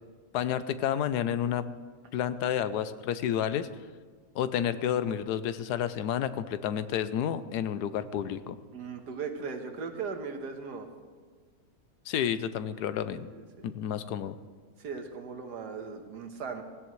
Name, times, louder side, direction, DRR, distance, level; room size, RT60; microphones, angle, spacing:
voice 1, 0.3-1.7 2.1-3.7 4.3-8.6 12.1-13.3 13.6-14.4, left 9 dB, 85° left, 13 dB, 1.2 m, -30 dB
voice 2, 8.7-10.9 13.1-13.7 14.8-16.6, right 5 dB, 85° right, 5 dB, 1.8 m, -38 dB
17.0 x 16.0 x 3.1 m, 1.5 s
omnidirectional pair, 1.7 m